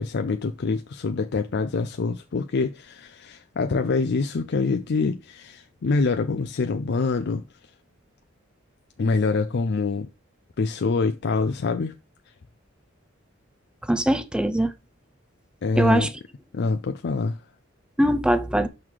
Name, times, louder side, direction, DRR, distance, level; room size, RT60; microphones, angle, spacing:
voice 1, 0.0-7.4 9.0-10.1 10.6-11.9 15.6-16.1 16.5-17.4, left 4 dB, 55° left, 0.5 m, -25 dB
voice 2, 13.8-14.7 15.8-16.1 18.0-18.7, right 1 dB, 5° right, 0.5 m, -21 dB
6.4 x 3.8 x 4.6 m
head